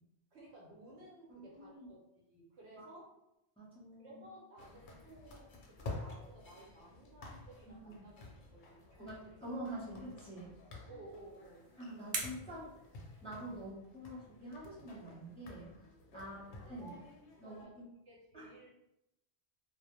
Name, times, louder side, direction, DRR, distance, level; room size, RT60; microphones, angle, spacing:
voice 1, 0.3-3.1 4.0-8.2 8.5-9.4 9.7-9.8 10.9-12.1 13.5-13.7 16.2-16.5 16.8-17.1 17.4-18.7, right 1 dB, 90° right, -4 dB, 1.1 m, -56 dB
voice 2, 1.3-1.9 2.8-2.9 3.6-4.2 7.6-8.0 9.0-10.5 11.8-12.7 13.2-15.7 16.1-17.0 17.4-17.9 18.3-18.5, right 1 dB, 5° left, -7 dB, 0.5 m, -46 dB
sound 1, 4.6-17.7, left 2 dB, 60° left, 0.6 m, -51 dB
sound 2, 11.1-13.7, right 4 dB, 65° right, 0.7 m, -45 dB
2.2 x 2.1 x 2.9 m, 0.85 s
omnidirectional pair, 1.1 m